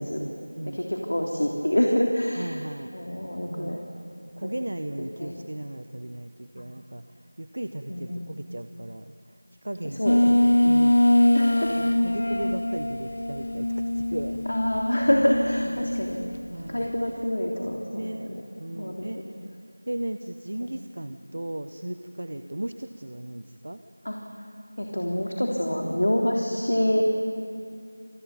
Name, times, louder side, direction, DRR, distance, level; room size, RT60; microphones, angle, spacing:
voice 1, 0.0-0.8 2.3-2.9 3.5-3.8 4.4-11.0 11.8-14.8 15.2-16.1 16.5-17.0 17.9-18.3 18.6-19.4 19.9-23.8, right 1 dB, 45° right, 9 dB, 1.0 m, -36 dB
voice 2, 0.6-2.5 2.9-3.8 4.4-4.5 5.2-5.4 7.9-8.4 9.8-10.4 11.3-11.8 14.5-16.2 16.7-18.4 18.7-19.0 20.6-20.7 24.0-24.2 24.8-27.0, left 1 dB, 65° left, 0 dB, 3.4 m, -26 dB
sound 1, 10.1-16.1, left 1 dB, 45° left, 1.0 m, -23 dB
28.0 x 22.0 x 9.3 m, 2.4 s
figure-of-eight pair, 180°, 0 cm